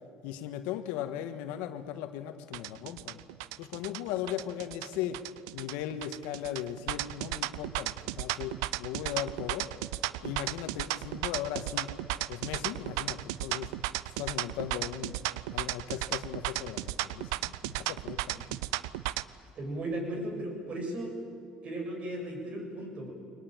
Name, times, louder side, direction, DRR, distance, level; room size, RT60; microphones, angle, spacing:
voice 1, 0.2-3.2 3.6-5.2 5.5-9.7 10.2-11.9 12.3-13.7 14.2-15.2 15.5-18.4, left 11 dB, 80° left, 9 dB, 1.5 m, -37 dB
sound 1, 2.5-19.2, right 17 dB, 85° right, 0.6 m, -34 dB
voice 2, 19.6-21.2 21.6-23.1, right 1 dB, 45° right, 2 dB, 7.2 m, -36 dB
23.0 x 20.0 x 9.0 m, 2.4 s
supercardioid pair, 80°, 3 cm